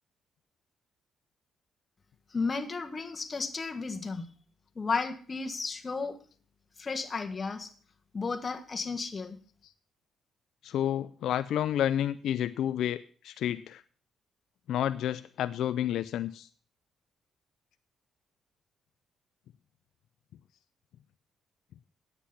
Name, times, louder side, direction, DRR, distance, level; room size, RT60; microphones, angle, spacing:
voice 1, 2.3-4.2 4.7-6.2 6.8-7.7 8.1-9.4, left 4 dB, 30° left, 5 dB, 1.5 m, -33 dB
voice 2, 10.6-13.8 14.7-16.5, left 11 dB, 75° left, 13 dB, 0.4 m, -30 dB
9.9 x 8.3 x 5.7 m, 0.42 s
cardioid pair, 90°, 0 cm